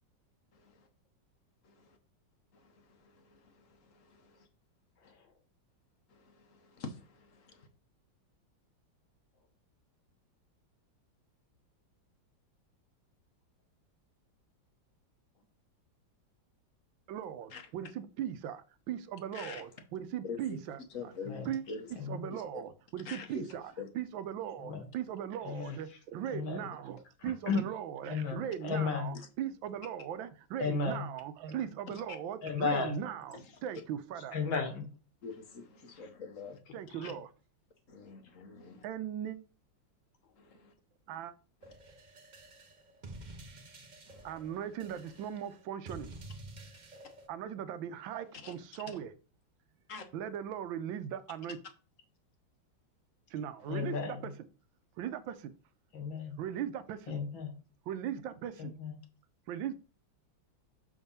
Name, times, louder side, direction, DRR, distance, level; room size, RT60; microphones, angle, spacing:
voice 1, 0.5-0.9 1.6-2.0 2.5-4.5 5.0-5.1 6.1-7.7 17.5-17.7 19.3-19.6 20.2-20.6 20.9-21.9 22.3-22.6 23.0-23.9 31.9-32.2 33.3-33.6 35.2-36.6 37.0-37.1 37.9-38.8 40.4-40.7 41.6-41.7 44.1-44.3 48.2-48.8 49.9-50.0 53.6-53.8, left 4 dB, 50° left, 1.1 m, -46 dB
voice 2, 17.1-20.8 21.5-21.6 22.1-23.6 23.9-34.4 36.7-37.3 38.8-39.4 41.1-41.3 44.2-46.1 47.3-49.1 50.1-51.6 53.3-54.3 55.0-55.5 56.4-57.1 57.9-58.7 59.5-59.7, right 9 dB, 85° right, 1.4 m, -39 dB
voice 3, 22.0-22.3 24.6-24.8 25.4-25.8 26.3-26.7 27.2-27.6 28.1-29.2 30.6-31.1 32.4-33.0 34.3-34.8 37.0-37.1 53.7-54.3 55.9-56.4 57.1-57.5 58.6-58.9, left 5 dB, 85° left, 2.2 m, -34 dB
sound 1, 41.6-47.3, right 2 dB, 45° right, 0.5 m, -50 dB
6.3 x 3.6 x 5.4 m
omnidirectional pair, 2.1 m